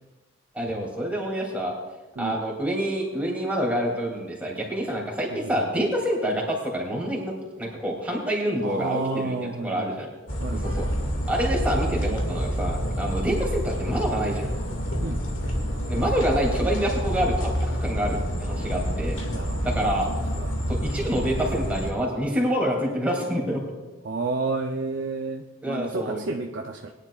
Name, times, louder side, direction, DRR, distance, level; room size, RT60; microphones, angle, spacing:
voice 1, 0.5-1.7 2.2-7.3 7.6-9.3 9.6-10.1 10.5-10.9 11.3-14.5 15.9-19.2 19.6-20.1 20.7-23.6 25.6-26.2, equal, 5° right, -3 dB, 2.8 m, -27 dB
voice 2, 8.6-10.0 10.4-10.8 13.2-13.4 15.0-15.2 19.3-19.9 20.4-20.6 24.0-26.9, right 3 dB, 60° right, 2 dB, 0.6 m, -31 dB
sound 1, 10.3-21.9, equal, 65° left, 2.2 m, -28 dB
21.0 x 10.5 x 2.4 m, 1.2 s
head